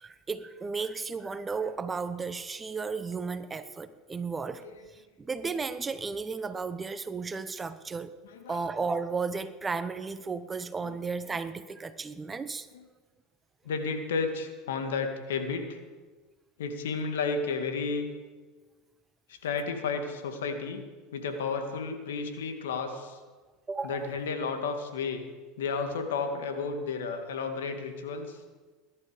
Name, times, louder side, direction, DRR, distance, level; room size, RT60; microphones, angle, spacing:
voice 1, 0.0-4.6 5.2-8.1 8.5-12.7 23.7-24.1, right 4 dB, 20° right, 12 dB, 0.9 m, -34 dB
voice 2, 13.7-15.8 16.6-18.1 19.4-20.8 21.1-23.2 23.8-25.2 25.6-28.4, left 4 dB, 85° left, 6 dB, 2.0 m, -32 dB
20.0 x 11.0 x 5.1 m, 1.3 s
hypercardioid pair, 95°, 0 cm